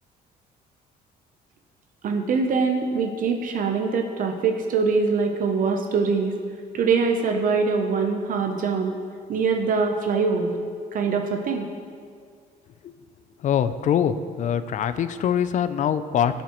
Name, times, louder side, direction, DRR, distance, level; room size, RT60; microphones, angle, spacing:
voice 1, 2.0-6.3 6.7-8.9 9.3-10.5 10.9-11.7, right 5 dB, 55° right, 4 dB, 0.7 m, -23 dB
voice 2, 13.4-16.4, left 9 dB, 45° left, 12 dB, 0.4 m, -23 dB
12.0 x 7.1 x 3.0 m, 2.1 s
cardioid pair, 110°, 17 cm